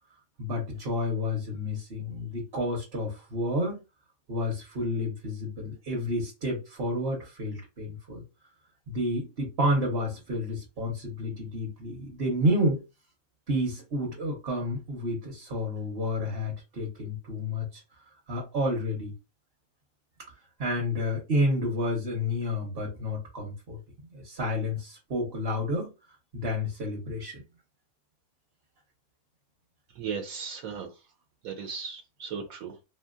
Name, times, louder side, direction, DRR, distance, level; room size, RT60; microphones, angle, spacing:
voice 1, 0.4-3.7 4.3-8.2 8.9-12.8 13.5-17.8 18.3-19.1 20.6-23.8 24.1-25.9 26.3-27.4, left 1 dB, 45° right, 1.0 m, -30 dB
voice 2, 29.9-30.9 31.4-32.8, right 6 dB, 75° right, 1.1 m, -36 dB
2.7 x 2.7 x 2.4 m
omnidirectional pair, 1.5 m